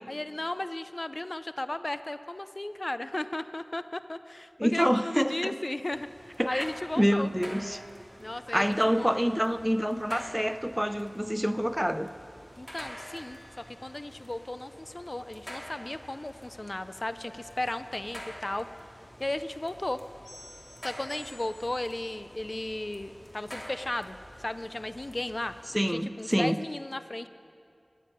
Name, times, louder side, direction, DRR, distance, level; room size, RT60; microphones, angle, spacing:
voice 1, 0.1-6.1 6.5-7.3 8.2-8.7 9.0-9.4 12.6-18.7 19.2-20.0 20.8-25.5 25.9-27.3, left 1 dB, 50° left, 12 dB, 0.5 m, -35 dB
voice 2, 4.6-5.5 6.4-6.7 7.0-7.8 8.5-12.1 25.7-26.6, equal, 5° right, 11 dB, 0.5 m, -26 dB
sound 1, 4.7-5.3 8.5-10.2 12.8-14.3 17.3-18.7 20.2-22.0, left 1 dB, 85° left, 2.3 m, -54 dB
sound 2, 5.9-25.8, equal, 20° left, 2.5 m, -48 dB
14.0 x 8.5 x 9.9 m, 2.4 s
wide cardioid pair, 50°, 0 cm